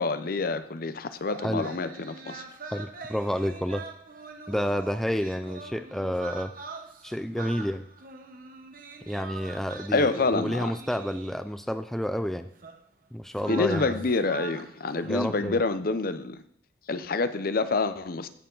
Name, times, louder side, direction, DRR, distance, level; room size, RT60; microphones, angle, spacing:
voice 1, 0.0-2.5 9.9-10.7 13.5-16.4 16.9-18.3, left 3 dB, 55° left, 12 dB, 0.6 m, -27 dB
Aga Khan Convocation, 1.2-11.6 12.6-12.8 13.3-15.5, right 4 dB, 50° right, 1.0 m, -43 dB
voice 2, 2.7-3.8 4.5-6.5 7.0-7.9 9.1-12.5 13.1-13.9 15.1-15.6, equal, ahead, 10 dB, 0.3 m, -30 dB
16.5 x 6.8 x 3.9 m, 0.69 s
head